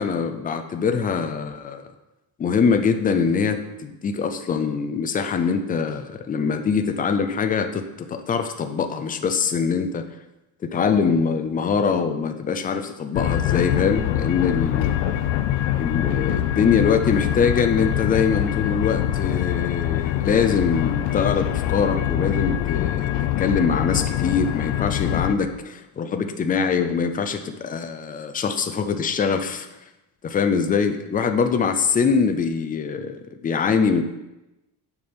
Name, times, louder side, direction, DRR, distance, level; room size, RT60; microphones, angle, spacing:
voice 1, 0.0-1.9 2.4-10.0 10.7-14.9 15.8-23.1 23.4-29.7 30.2-34.0, left 6 dB, 20° left, 7 dB, 0.4 m, -23 dB
sound 1, 13.1-25.3, left 12 dB, 85° left, 0.7 m, -24 dB
9.6 x 5.2 x 4.3 m, 0.96 s
cardioid pair, 180°, 43 cm